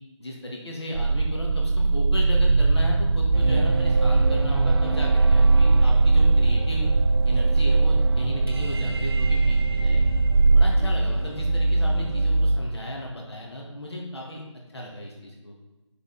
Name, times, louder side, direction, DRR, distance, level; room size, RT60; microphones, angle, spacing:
voice 1, 0.2-6.9 7.2-10.2 10.5-14.4 14.7-15.5, left 1 dB, 55° left, -2 dB, 1.9 m, -35 dB
sound 1, 0.9-10.7, right 3 dB, 85° right, 0.6 m, -20 dB
sound 2, 3.3-12.6, right 2 dB, 50° right, 0.8 m, -27 dB
9.2 x 6.1 x 4.1 m, 1.1 s
figure-of-eight pair, 170°, 16 cm